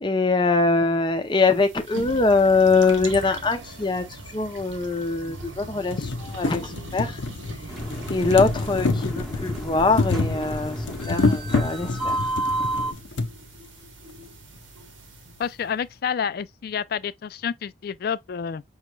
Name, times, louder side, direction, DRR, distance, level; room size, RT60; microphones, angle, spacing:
voice 1, 0.0-6.0 6.3-7.2 8.1-12.2, left 3 dB, 25° left, 0.7 m, -22 dB
sound 1, 1.3-15.6, right 2 dB, 85° right, 1.2 m, -42 dB
sound 2, 3.7-3.8 4.8-4.9 5.3-5.4 5.7-13.3 14.2-14.3 14.6-14.7, left 3 dB, 75° left, 0.7 m, -27 dB
sound 3, 7.7-12.9, right 1 dB, ahead, 1.0 m, -31 dB
voice 2, 15.4-18.6, left 7 dB, 50° left, 0.3 m, -29 dB
5.5 x 3.1 x 2.2 m
head